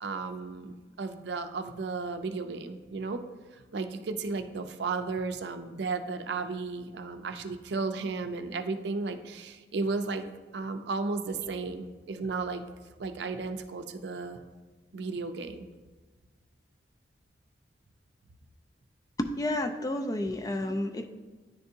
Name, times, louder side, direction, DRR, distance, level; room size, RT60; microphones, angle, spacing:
voice 1, 0.0-3.2 3.7-10.2 10.5-12.6 13.0-14.4 14.9-15.7, right 4 dB, 80° right, 7 dB, 0.5 m, -34 dB
voice 2, 19.2-21.0, left 1 dB, 20° left, 7 dB, 0.3 m, -30 dB
10.0 x 3.4 x 2.8 m, 1.3 s
head